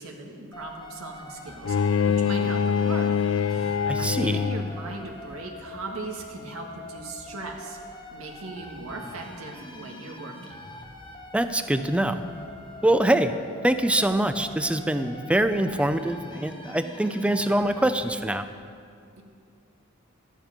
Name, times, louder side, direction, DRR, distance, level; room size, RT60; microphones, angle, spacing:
voice 1, 0.0-1.8 2.0-3.1 3.5-7.8 8.1-10.5, right 3 dB, 85° right, 1 dB, 1.7 m, -38 dB
sound 1, 0.5-18.2, left 1 dB, 20° left, 1.1 m, -44 dB
Bowed string instrument, 1.6-4.9, left 6 dB, 65° left, 0.4 m, -24 dB
voice 2, 3.9-4.4 11.3-12.2 12.8-13.3 13.6-18.5, right 1 dB, 5° right, 10 dB, 0.4 m, -24 dB
13.0 x 10.0 x 5.2 m, 2.3 s
head